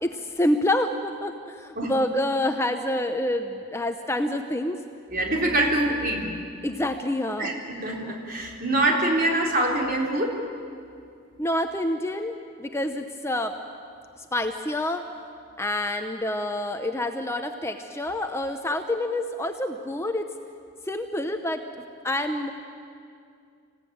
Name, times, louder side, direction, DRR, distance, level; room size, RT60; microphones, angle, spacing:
voice 1, 0.0-4.8 6.6-7.5 11.4-13.5 14.3-15.0 15.6-20.3 20.9-21.6 22.0-22.5, left 1 dB, 15° left, 6 dB, 0.8 m, -27 dB
voice 2, 5.1-6.2 7.4-10.3, right 1 dB, 45° right, 0 dB, 3.7 m, -24 dB
26.5 x 16.5 x 9.4 m, 2.4 s
head